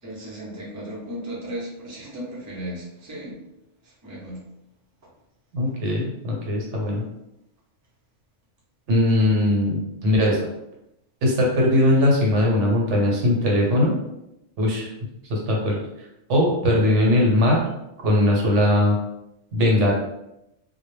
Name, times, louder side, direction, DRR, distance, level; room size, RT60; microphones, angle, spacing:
voice 1, 0.0-3.4 3.8-4.4, right 1 dB, 20° right, -5 dB, 0.5 m, -35 dB
voice 2, 5.5-7.0 8.9-10.5 11.2-13.9 14.6-14.9 15.2-17.7 18.0-19.0 19.5-19.9, left 1 dB, 75° right, -1 dB, 1.0 m, -20 dB
2.1 x 2.0 x 3.1 m, 0.85 s
omnidirectional pair, 1.3 m